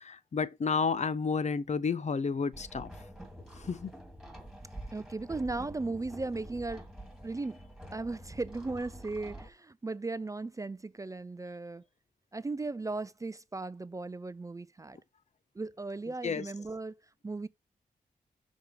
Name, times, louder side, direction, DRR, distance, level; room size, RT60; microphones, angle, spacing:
voice 1, 0.0-2.9 3.7-3.9 16.2-16.4, left 5 dB, 50° left, 0.5 m, -31 dB
sound 1, 2.5-9.5, equal, ahead, 2.3 m, -47 dB
voice 2, 4.9-6.9 7.2-7.6 7.9-11.8 12.3-15.0 15.6-16.9 17.2-17.5, right 3 dB, 20° right, 0.4 m, -37 dB
6.3 x 3.5 x 4.7 m
cardioid pair, 55°, 15 cm